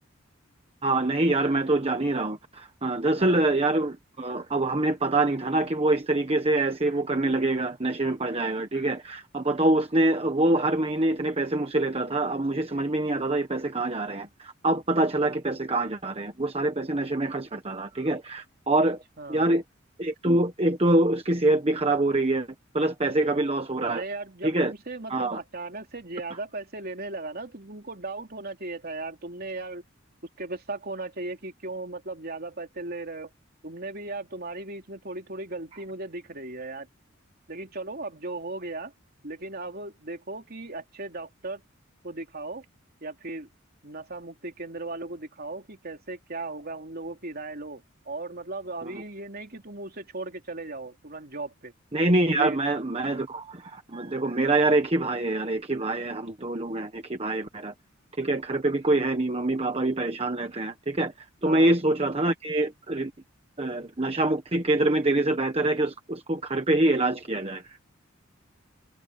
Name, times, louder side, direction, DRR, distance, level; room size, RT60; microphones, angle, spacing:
voice 1, 0.8-19.0 19.3-19.6 20.0-22.5 22.7-24.0 24.4-24.7 25.1-25.4 48.8-49.0 51.9-57.7 58.2-61.1 61.4-63.1 63.6-67.8, right 2 dB, 30° right, 1.3 m, -25 dB
voice 2, 23.8-29.8 30.4-33.3 33.6-36.9 37.5-38.9 39.2-41.6 42.0-42.6 43.0-43.5 43.8-51.7 52.3-52.6 61.4-61.7, right 2 dB, 50° right, 3.3 m, -37 dB
head